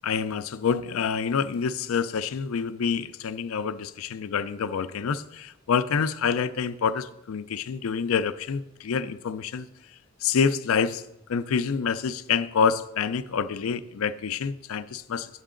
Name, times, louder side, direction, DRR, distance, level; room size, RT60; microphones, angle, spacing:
voice 1, 0.0-9.7 10.2-11.0 11.3-15.4, left 6 dB, 80° left, 13 dB, 0.4 m, -27 dB
8.9 x 7.7 x 3.7 m, 0.90 s
head